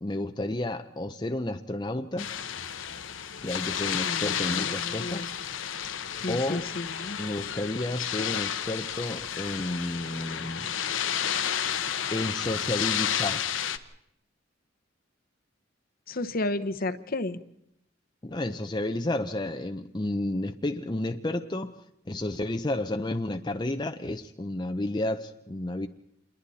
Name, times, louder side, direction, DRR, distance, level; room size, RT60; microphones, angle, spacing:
voice 1, 0.0-2.3 3.4-5.3 6.3-6.7 7.2-10.7 12.1-13.5 18.2-25.9, left 1 dB, 20° left, 0.7 m, -31 dB
sound 1, 2.2-13.8, left 9 dB, 80° left, 1.1 m, -31 dB
voice 2, 4.0-5.3 6.2-7.2 16.1-17.4, left 2 dB, 50° left, 1.0 m, -32 dB
28.0 x 22.0 x 4.2 m
head